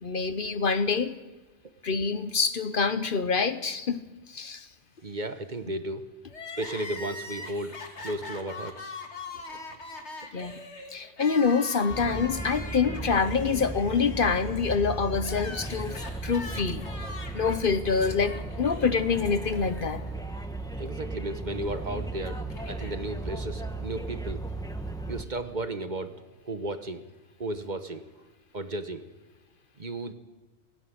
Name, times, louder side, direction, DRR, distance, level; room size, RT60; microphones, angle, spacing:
voice 1, 0.0-1.2 1.8-4.0 4.3-4.7 10.3-10.6 10.9-16.0 16.2-16.8 17.3-20.0, left 5 dB, 55° left, 11 dB, 1.1 m, -26 dB
voice 2, 5.0-6.0 6.6-8.9 9.5-9.6 20.8-22.4 22.7-24.4 25.1-26.1 26.4-27.0 27.4-28.0 28.5-29.0 29.8-30.1, right 1 dB, 45° right, 9 dB, 1.3 m, -34 dB
Crying sobbing, 6.3-20.4 20.7-20.8 21.8-22.9, left 3 dB, 85° left, 2.3 m, -42 dB
sound 1, 11.9-25.2, right 2 dB, 5° left, 1.1 m, -36 dB
17.5 x 16.5 x 9.3 m, 1.2 s
omnidirectional pair, 1.1 m